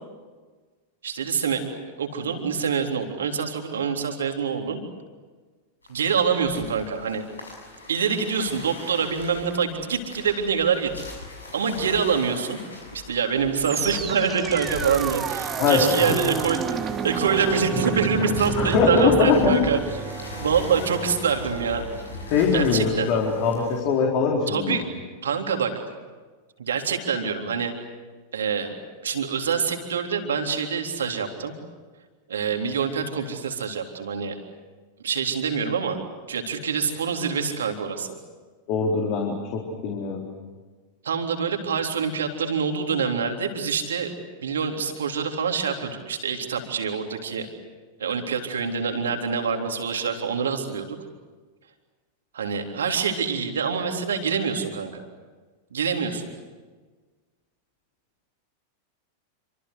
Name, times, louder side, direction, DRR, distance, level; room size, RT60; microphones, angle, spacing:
voice 1, 1.0-1.6 2.0-4.8 5.9-7.2 7.9-10.9 11.5-12.6 12.9-19.8 20.4-21.8 22.5-23.1 24.5-24.9 25.2-25.7 26.6-27.7 28.3-28.7 29.0-31.5 32.3-34.4 35.0-36.0 36.3-38.2 41.0-44.1 44.4-47.5 48.0-50.9 52.3-55.0 55.7-56.3, right 6 dB, 65° right, 4 dB, 3.6 m, -25 dB
sound 1, 5.8-23.8, left 2 dB, 80° left, 6.8 m, -41 dB
sound 2, 13.6-22.8, right 6 dB, 25° right, 2.1 m, -31 dB
voice 2, 15.6-16.1 18.6-19.6 22.3-24.8 38.7-40.2, left 5 dB, 45° left, 0 dB, 4.2 m, -22 dB
28.0 x 25.5 x 8.2 m, 1.4 s
figure-of-eight pair, 90°, 0 cm